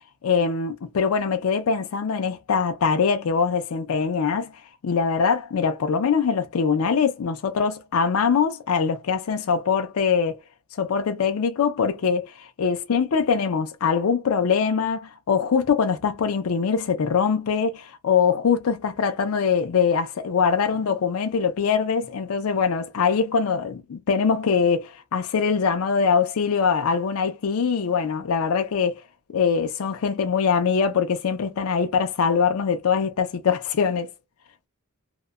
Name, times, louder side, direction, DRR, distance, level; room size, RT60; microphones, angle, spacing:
voice 1, 0.2-10.4 10.8-29.0 29.3-34.1, left 6 dB, 80° left, 0.4 m, -23 dB
2.8 x 2.1 x 2.3 m
head